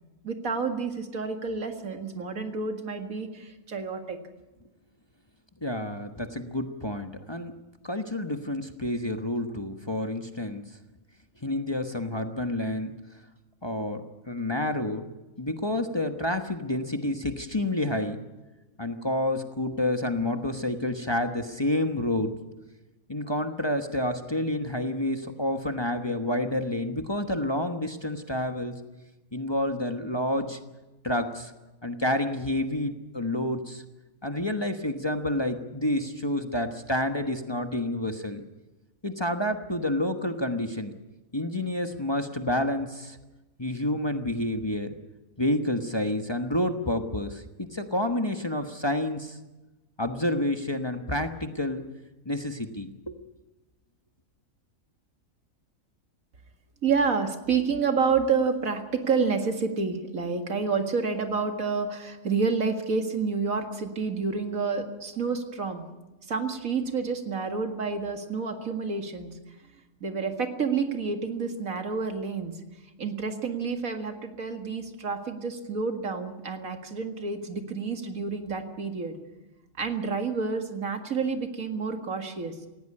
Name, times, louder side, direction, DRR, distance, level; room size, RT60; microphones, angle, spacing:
voice 1, 0.2-4.2 56.8-65.8 66.3-69.3 70.0-72.5 73.0-79.2 79.8-82.6, right 5 dB, 85° right, 5 dB, 2.3 m, -29 dB
voice 2, 5.6-7.5 7.8-10.6 11.4-12.9 13.6-15.1 15.4-18.2 18.8-22.3 23.1-28.8 29.3-30.6 31.0-31.5 31.8-33.8 34.2-38.4 39.0-40.9 41.3-43.2 43.6-44.9 45.4-49.4 50.0-51.8 52.2-53.2, left 1 dB, 20° left, 5 dB, 1.1 m, -29 dB
19.0 x 16.5 x 9.8 m, 1.1 s
omnidirectional pair, 1.4 m